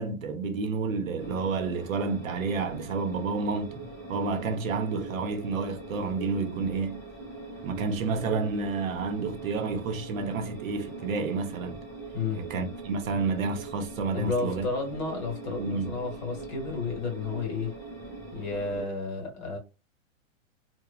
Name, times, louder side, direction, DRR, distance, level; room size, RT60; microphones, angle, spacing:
voice 1, 0.0-7.0 7.6-11.8 12.3-14.6 15.6-16.0, right 4 dB, 75° right, 0.7 m, -30 dB
sound 1, 1.2-18.8, right 3 dB, 10° left, 0.8 m, -41 dB
voice 2, 14.1-17.8 18.3-19.6, left 4 dB, 35° left, 1.0 m, -32 dB
3.0 x 2.1 x 2.3 m
supercardioid pair, 170°, 40 cm